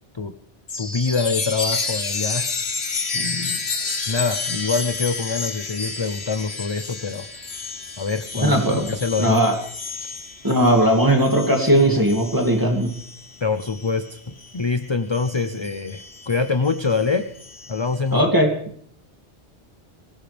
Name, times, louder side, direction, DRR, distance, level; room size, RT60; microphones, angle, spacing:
Chime, 0.7-14.7 15.1-18.0, left 4 dB, 70° left, 1.9 m, -31 dB
voice 1, 0.8-2.5 3.1-3.6 4.1-7.3 8.0-9.4 10.0-10.1 13.4-14.2 14.5-17.2 17.7-18.2, left 4 dB, 30° left, 9 dB, 0.7 m, -25 dB
voice 2, 8.4-8.9 9.2-9.6 10.4-12.9 18.1-18.5, right 1 dB, 20° right, 2 dB, 2.6 m, -18 dB
24.5 x 16.5 x 3.4 m, 0.63 s
omnidirectional pair, 1.1 m